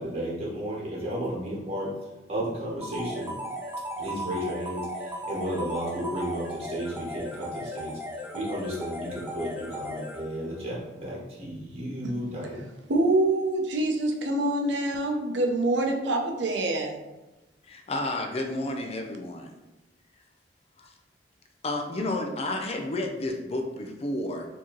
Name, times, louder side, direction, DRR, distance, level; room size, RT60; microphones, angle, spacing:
voice 1, 0.0-1.9 2.3-3.3 4.0-7.9 8.3-12.7, equal, 35° right, 1.1 m, -33 dB
sound 1, 2.8-10.6, equal, 10° right, 0.6 m, -36 dB
voice 2, 12.9-17.0, right 2 dB, 75° right, 0.6 m, -25 dB
voice 3, 17.7-19.5 20.8-20.9 21.6-24.4, left 2 dB, 35° left, 0.5 m, -31 dB
4.5 x 2.8 x 3.0 m
head